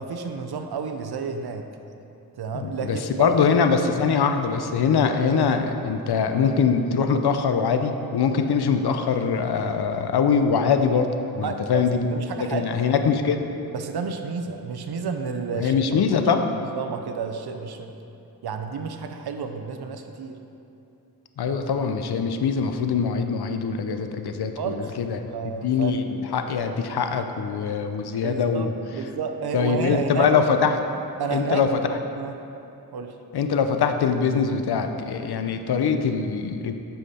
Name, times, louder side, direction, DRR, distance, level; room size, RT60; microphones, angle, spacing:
voice 1, 0.0-1.6 2.4-3.4 11.4-13.1 13.7-15.7 16.7-17.9 18.4-20.4 21.5-21.6 24.6-24.8 25.3-26.0 28.2-30.3 31.2-31.6 32.2-32.3 32.9-33.1, right 5 dB, 80° right, 6 dB, 0.6 m, -31 dB
voice 2, 2.5-12.1 12.4-13.4 15.5-16.6 21.4-25.3 25.6-28.7 29.5-30.8 31.3-31.8 33.3-36.7, left 6 dB, 85° left, 7 dB, 0.6 m, -23 dB
8.2 x 5.7 x 4.2 m, 2.8 s
wide cardioid pair, 85°, 38 cm